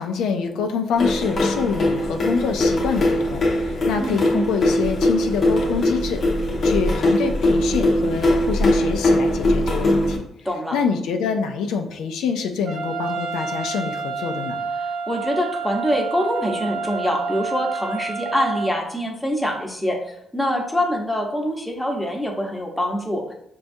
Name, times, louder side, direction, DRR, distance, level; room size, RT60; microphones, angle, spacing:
voice 1, 0.0-6.2 6.6-10.2 10.7-14.6, left 5 dB, 85° left, 4 dB, 0.4 m, -25 dB
sound 1, 1.0-10.2, left 1 dB, 45° left, 0.7 m, -21 dB
voice 2, 4.0-4.5 10.4-10.8 14.8-23.3, equal, 5° left, 0 dB, 0.9 m, -25 dB
Trumpet, 12.7-18.7, right 4 dB, 70° right, 0.5 m, -28 dB
6.1 x 2.3 x 2.6 m, 0.74 s
cardioid pair, 90°, 0 cm